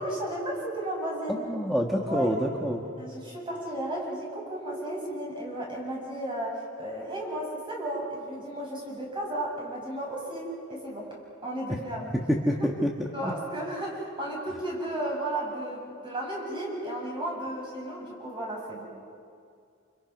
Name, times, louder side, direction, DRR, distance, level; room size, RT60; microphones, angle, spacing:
voice 1, 0.0-1.4 2.1-2.4 3.0-11.1 11.4-12.2 12.6-12.7 13.1-18.8, right 1 dB, 25° right, -2 dB, 7.5 m, -34 dB
voice 2, 1.3-2.8 12.1-12.9 13.2-13.3, equal, ahead, -1 dB, 1.5 m, -27 dB
28.5 x 28.5 x 6.0 m, 2.3 s
head